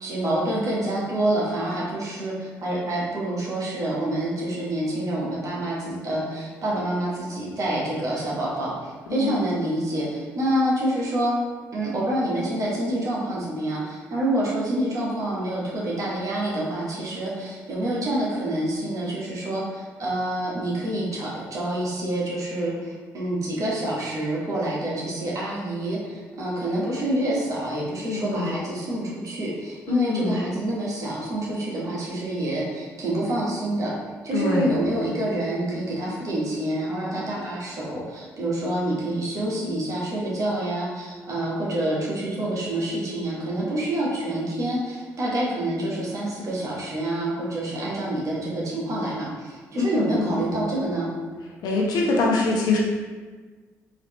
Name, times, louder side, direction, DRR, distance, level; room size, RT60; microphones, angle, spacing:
voice 1, 0.0-11.3 11.7-33.9 34.2-51.1, right 1 dB, 55° right, -5 dB, 1.4 m, -27 dB
voice 2, 9.1-9.4 28.1-28.6 29.9-30.4 34.3-34.8 49.7-50.3 51.6-52.8, left 3 dB, 70° left, -1 dB, 0.8 m, -24 dB
4.0 x 2.9 x 3.1 m, 1.4 s
hypercardioid pair, 55°, 7 cm